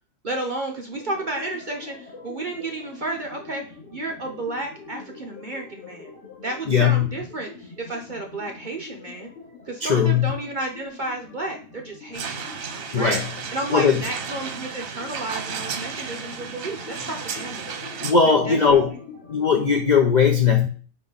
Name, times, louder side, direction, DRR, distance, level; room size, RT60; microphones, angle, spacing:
voice 1, 0.2-3.6 3.9-6.1 6.4-9.3 9.7-12.4 12.9-13.2 13.5-17.6 18.5-18.8, right 2 dB, 45° right, 2 dB, 0.6 m, -32 dB
sound 1, 0.9-19.9, left 4 dB, 45° left, 2.5 m, -44 dB
voice 2, 6.7-7.1 9.8-10.3 12.9-13.3 13.7-14.0 18.0-18.9 19.3-20.7, left 6 dB, 80° left, 3 dB, 0.4 m, -18 dB
sound 2, 12.1-18.1, right 6 dB, 60° right, 1.1 m, -33 dB
8.7 x 3.1 x 4.0 m, 0.41 s
omnidirectional pair, 1.7 m